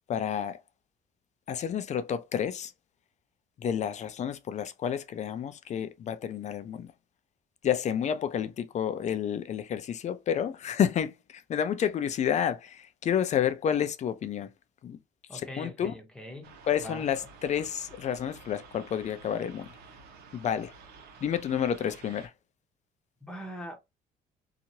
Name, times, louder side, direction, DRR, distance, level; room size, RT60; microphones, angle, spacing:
voice 1, 0.1-0.6 1.5-2.7 3.6-6.9 7.6-14.5 14.8-15.0 15.3-15.9 16.7-19.7 20.3-20.7 21.2-22.3, left 9 dB, 45° left, 0.5 m, -30 dB
voice 2, 15.3-17.1 23.2-23.8, equal, 5° left, 1.0 m, -42 dB
sound 1, 16.4-22.3, right 4 dB, 70° right, 0.9 m, -51 dB
2.9 x 2.4 x 2.7 m
cardioid pair, 110°, 17 cm